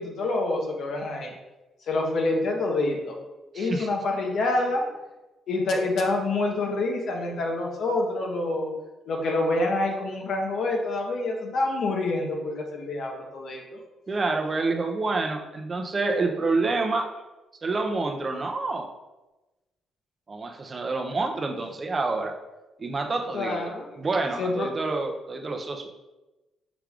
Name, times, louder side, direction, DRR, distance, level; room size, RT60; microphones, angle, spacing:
voice 1, 0.0-1.3 1.8-3.2 3.5-4.8 5.5-8.7 9.1-13.8 23.3-23.9 24.3-24.7, left 2 dB, 65° left, 1 dB, 0.9 m, -27 dB
voice 2, 3.5-3.9 14.1-17.1 17.6-18.9 20.3-22.3 22.8-23.6 24.0-25.9, right 3 dB, 35° right, 4 dB, 0.5 m, -27 dB
5.9 x 3.3 x 2.4 m, 1.1 s
cardioid pair, 90°, 0 cm